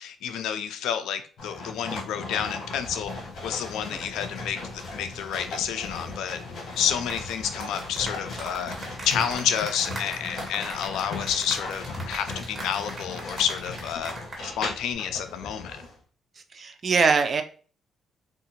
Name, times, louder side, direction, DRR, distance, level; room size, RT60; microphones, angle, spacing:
voice 1, 0.0-3.1 3.4-8.7 9.0-14.1 14.4-15.8, left 8 dB, 85° left, 9 dB, 0.3 m, -29 dB
sound 1, 1.4-15.9, left 3 dB, 65° left, 1.3 m, -38 dB
sound 2, 7.0-14.5 14.7-14.9, right 2 dB, 20° right, 1.3 m, -39 dB
voice 2, 16.5-17.4, right 5 dB, 45° right, 7 dB, 0.4 m, -22 dB
3.6 x 2.4 x 2.8 m, 0.40 s
cardioid pair, 90°, 0 cm